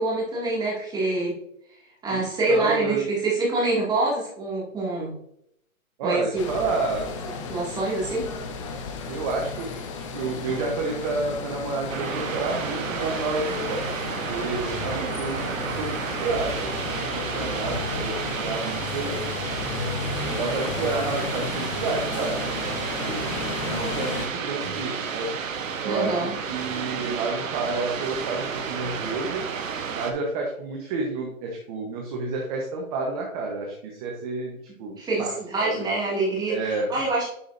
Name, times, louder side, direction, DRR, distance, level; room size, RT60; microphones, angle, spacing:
voice 1, 0.0-1.3 2.0-5.2 6.0-6.4 7.5-8.3 25.8-26.4 34.9-37.2, right 2 dB, 10° right, -5 dB, 2.3 m, -25 dB
voice 2, 2.1-3.0 6.0-7.1 9.1-14.0 14.3-15.4 15.8-19.1 20.2-23.4 23.6-25.3 25.8-29.4 29.9-35.3 35.6-35.8 36.5-36.9, right 3 dB, 25° right, 0 dB, 1.1 m, -30 dB
sound 1, 6.4-24.3, left 4 dB, 20° left, 0.7 m, -33 dB
sound 2, 11.9-30.1, right 6 dB, 65° right, 1.2 m, -31 dB
11.0 x 4.9 x 2.7 m, 0.75 s
hypercardioid pair, 150°, 43 cm